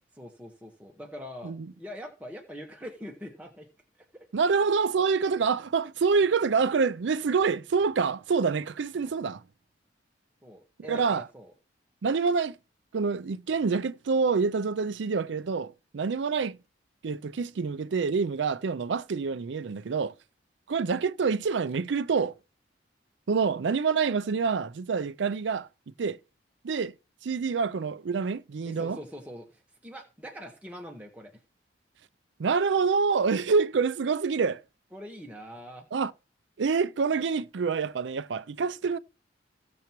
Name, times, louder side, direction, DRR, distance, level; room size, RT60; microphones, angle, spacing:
voice 1, 0.0-3.7 4.0-4.3 4.6-4.7 10.4-11.5 28.6-31.4 34.9-35.9, equal, 10° right, 1.3 m, -43 dB
voice 2, 4.3-9.4 10.9-11.3 12.0-12.6 12.9-16.6 17.0-20.2 20.7-22.3 23.3-25.7 26.0-26.2 26.6-26.9 27.2-29.0 32.4-34.6 35.9-36.1 36.6-39.0, right 5 dB, 70° right, 0.4 m, -26 dB
16.0 x 6.9 x 3.0 m
head